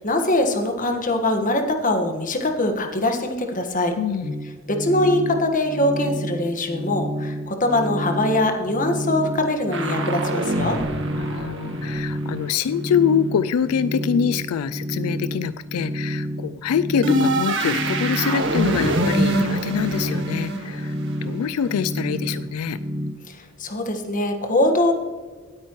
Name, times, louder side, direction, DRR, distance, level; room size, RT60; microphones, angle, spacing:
voice 1, 0.0-3.9 4.7-10.8 23.3-24.9, left 1 dB, 35° left, 5 dB, 1.5 m, -22 dB
voice 2, 4.0-4.4 11.1-22.8, left 7 dB, 85° left, 14 dB, 0.3 m, -25 dB
sound 1, 4.2-23.1, equal, 15° right, 1.0 m, -30 dB
sound 2, 9.7-12.6 17.0-21.7, right 1 dB, 55° right, 1.7 m, -25 dB
18.5 x 8.8 x 3.1 m, 1.4 s
head